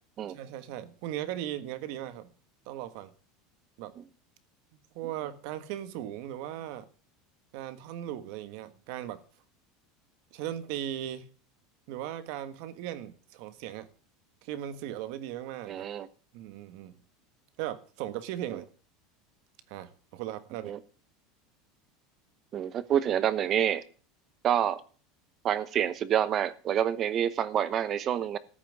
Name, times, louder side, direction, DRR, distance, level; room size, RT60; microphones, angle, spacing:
voice 1, 0.2-2.3 2.6-3.1 3.8-3.9 4.9-6.9 7.5-9.2 10.3-11.3 11.9-13.9 14.4-15.8 16.3-17.0 17.6-18.7 19.7-20.7, right 12 dB, 55° right, 1.5 m, -38 dB
voice 2, 15.7-16.1 18.5-18.6 20.6-20.8 22.5-23.8 24.4-24.8 25.4-28.4, right 10 dB, 30° right, 0.9 m, -27 dB
14.0 x 5.9 x 9.6 m
supercardioid pair, 165°, 0 cm